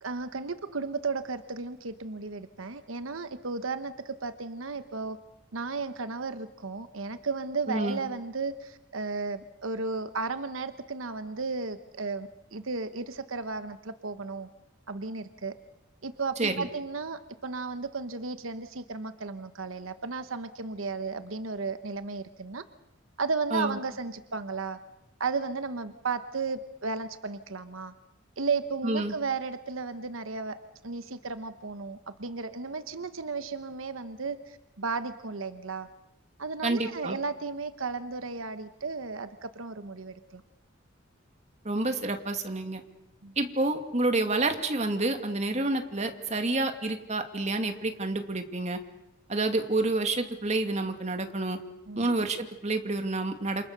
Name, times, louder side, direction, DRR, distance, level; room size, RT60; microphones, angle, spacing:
voice 1, 0.0-5.2 5.5-14.5 14.9-15.5 16.0-22.6 23.2-24.8 25.2-27.9 28.4-30.6 30.8-35.9 36.4-40.4 43.2-43.3 51.9-52.1, right 4 dB, 85° right, 10 dB, 1.1 m, -34 dB
voice 2, 7.7-8.0 16.4-16.7 23.5-23.8 28.8-29.1 36.6-37.2 41.6-42.8 43.4-48.8 49.3-51.6 51.9-53.6, right 2 dB, 35° right, 6 dB, 2.4 m, -29 dB
28.5 x 27.5 x 6.7 m, 0.89 s
head